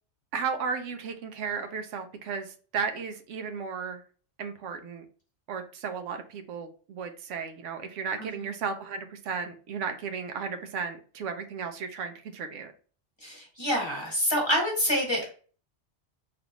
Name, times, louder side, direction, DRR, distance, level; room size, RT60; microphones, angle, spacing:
voice 1, 0.3-4.0 4.4-5.1 5.5-12.7, right 5 dB, 85° right, 7 dB, 0.9 m, -34 dB
voice 2, 13.2-15.3, equal, 25° left, -2 dB, 1.2 m, -27 dB
3.5 x 2.4 x 2.9 m, 0.40 s
omnidirectional pair, 1.2 m